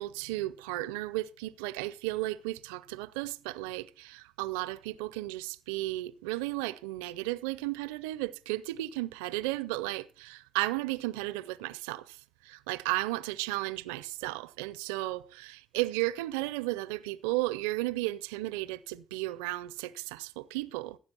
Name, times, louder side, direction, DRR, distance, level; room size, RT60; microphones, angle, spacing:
voice 1, 0.0-12.2 12.4-21.0, right 18 dB, 90° right, 0.4 m, -34 dB
15.0 x 7.4 x 4.4 m
hypercardioid pair, 50°, 0 cm